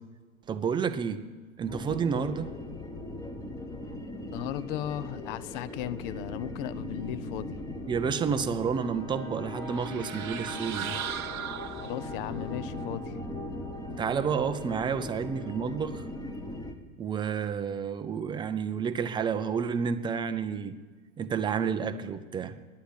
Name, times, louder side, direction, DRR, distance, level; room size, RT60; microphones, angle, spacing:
voice 1, 0.5-1.2 1.6-2.5 7.9-11.0 14.0-16.0 17.0-20.8 21.2-22.6, right 6 dB, 10° right, 9 dB, 0.4 m, -30 dB
sound 1, 1.7-16.7, left 1 dB, 10° left, 1.1 m, -39 dB
voice 2, 4.3-7.6 11.7-13.2, left 12 dB, 40° left, 17 dB, 0.6 m, -36 dB
sound 2, 9.7-12.3, right 10 dB, 80° right, 1.0 m, -37 dB
10.5 x 10.0 x 8.0 m, 1.4 s
hypercardioid pair, 110°, 42 cm